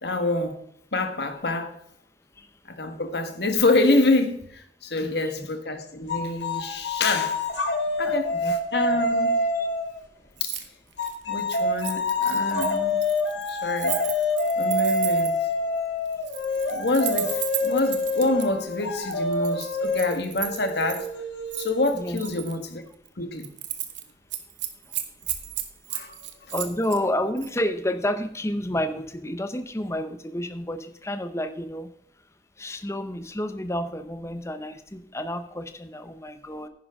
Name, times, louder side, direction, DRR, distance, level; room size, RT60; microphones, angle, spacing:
voice 1, 0.0-0.6 0.9-1.7 2.7-7.4 8.0-9.3 10.4-10.6 11.3-13.0 13.5-14.0 14.6-15.3 16.7-21.1 21.6-22.8 23.2-23.5 25.9-26.2, left 2 dB, 65° left, 1.6 m, -26 dB
voice 2, 5.0-5.5 8.0-8.5 9.5-9.7 21.9-22.2 26.5-31.9 32.6-36.7, left 1 dB, 15° left, 0.8 m, -30 dB
sound 1, 6.1-10.0 11.0-22.3, left 2 dB, 90° left, 1.9 m, -26 dB
Keys jangling, 10.4-10.6 10.9-15.4 16.1-18.5 19.1-21.1 21.5-22.6 22.9-23.1 23.4-24.0 24.3-27.0 27.4-27.6, right 13 dB, 85° right, 1.2 m, -34 dB
10.5 x 10.0 x 3.7 m
head